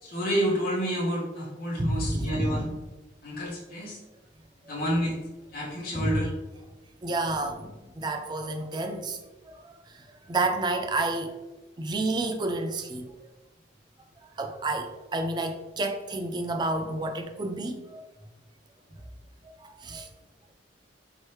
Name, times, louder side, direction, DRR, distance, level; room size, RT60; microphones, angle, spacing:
voice 1, 0.0-2.6 3.2-4.0 4.6-5.2 5.5-6.3, equal, 50° left, -6 dB, 1.1 m, -29 dB
voice 2, 1.8-2.6 6.0-6.2 7.0-9.2 9.5-11.3 11.8-13.3 14.2-18.0 19.4-20.1, right 2 dB, 20° right, 6 dB, 0.3 m, -30 dB
4.5 x 3.1 x 3.0 m, 1.1 s
head